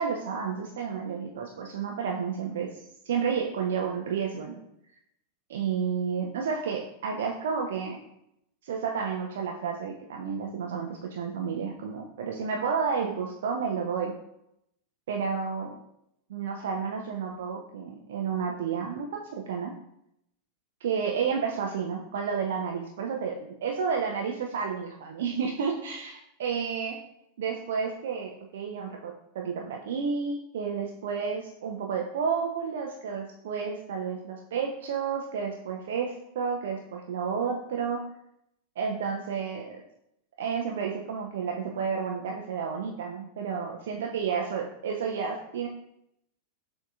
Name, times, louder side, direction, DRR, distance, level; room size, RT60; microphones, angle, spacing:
voice 1, 0.0-2.7 3.0-4.6 5.5-8.0 8.6-14.1 15.1-15.8 16.3-19.7 20.8-27.0 27.4-38.0 38.8-39.7 40.4-45.7, right 6 dB, 60° right, 1 dB, 0.4 m, -31 dB
6.4 x 2.6 x 2.3 m, 0.80 s
figure-of-eight pair, 90°, 0 cm